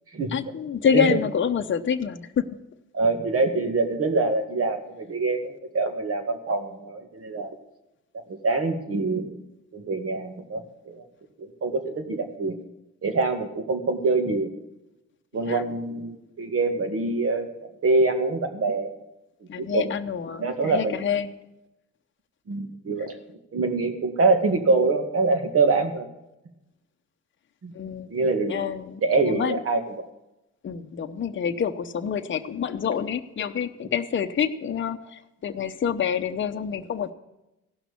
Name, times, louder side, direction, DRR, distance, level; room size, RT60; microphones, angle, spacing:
voice 1, 0.3-2.4 15.5-15.6 19.5-21.3 27.7-28.1 28.5-29.6 30.6-37.1, left 7 dB, 40° left, 6 dB, 0.9 m, -27 dB
voice 2, 2.9-7.5 8.3-9.3 9.7-11.0 11.4-12.6 13.0-14.5 15.3-17.5 17.8-18.9 19.6-20.0 20.4-21.0 22.5-23.2 23.5-26.1 27.6-27.7 28.1-28.6 29.0-30.1, right 3 dB, 50° right, 7 dB, 2.1 m, -25 dB
16.5 x 6.0 x 8.4 m, 0.94 s
cardioid pair, 90°, 30 cm